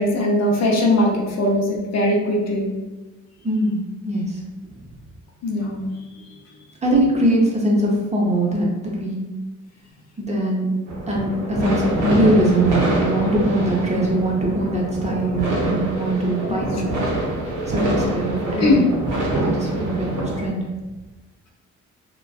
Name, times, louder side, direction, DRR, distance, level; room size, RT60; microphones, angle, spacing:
voice 1, 0.0-2.8 5.4-5.9 16.3-16.6 18.6-18.8, left 1 dB, 60° left, -1 dB, 0.6 m, -20 dB
voice 2, 3.4-4.3 6.8-8.7 9.0-9.2 10.2-10.7 11.1-16.8 17.7-18.9 19.5-20.6, right 1 dB, 25° right, -3 dB, 0.6 m, -21 dB
sound 1, 10.9-20.5, right 2 dB, 85° right, 0.7 m, -25 dB
2.4 x 2.2 x 2.3 m, 1.1 s
cardioid pair, 90°, 30 cm